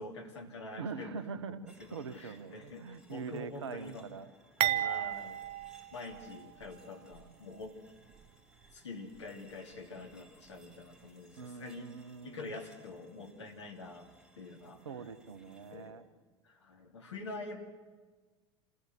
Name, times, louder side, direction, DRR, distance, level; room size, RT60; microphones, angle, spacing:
voice 1, 0.0-1.2 1.5-4.1 4.8-5.4 5.9-7.8 8.7-11.9 12.2-14.1 14.4-14.8 15.7-15.9 16.4-17.6, left 3 dB, 75° left, 2 dB, 2.9 m, -46 dB
voice 2, 0.8-4.3 4.6-4.9 11.4-12.5 14.8-16.0, right 5 dB, 75° right, 13 dB, 1.2 m, -43 dB
sound 1, 1.7-15.9, equal, 5° right, 5.9 m, -64 dB
sound 2, 4.6-6.8 7.1-7.3 8.1-8.3, right 13 dB, 45° right, 0.8 m, -34 dB
27.0 x 16.0 x 8.0 m, 1.4 s
figure-of-eight pair, 75°, 15 cm